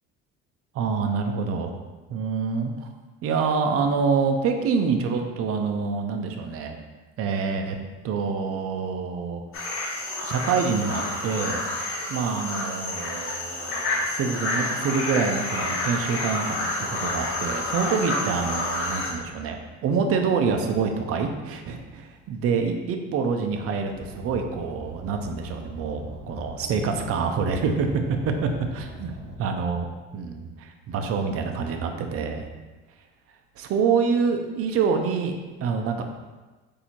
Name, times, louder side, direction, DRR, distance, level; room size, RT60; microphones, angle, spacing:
voice 1, 0.7-1.7 2.1-2.9 3.2-6.8 7.2-7.8 8.0-9.4 10.2-11.7 12.1-19.6 19.8-27.9 28.4-29.1 29.4-32.5 33.6-35.3 35.6-36.0, right 5 dB, 50° right, 4 dB, 0.6 m, -26 dB
sound 1, 9.5-19.1, left 2 dB, 45° left, 1.2 m, -29 dB
Car, 23.9-29.4, equal, 80° right, 0.8 m, -41 dB
4.1 x 2.7 x 4.4 m, 1.2 s
cardioid pair, 115°, 29 cm